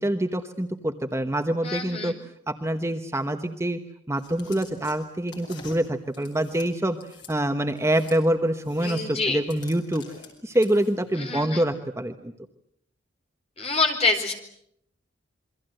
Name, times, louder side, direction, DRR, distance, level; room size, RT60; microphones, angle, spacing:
voice 1, 0.0-2.1 2.5-3.8 4.1-7.0 7.3-10.0 10.4-12.3, right 1 dB, 15° right, 6 dB, 1.1 m, -25 dB
voice 2, 1.6-2.2 8.8-9.4 11.2-11.6 13.6-14.3, left 3 dB, 30° left, 4 dB, 4.3 m, -26 dB
Clothes & hangers moving in a wardrobe, 4.2-7.3 7.8-8.2 8.5-11.1, left 4 dB, 60° left, 6.3 m, -46 dB
28.0 x 23.5 x 7.9 m, 0.73 s
head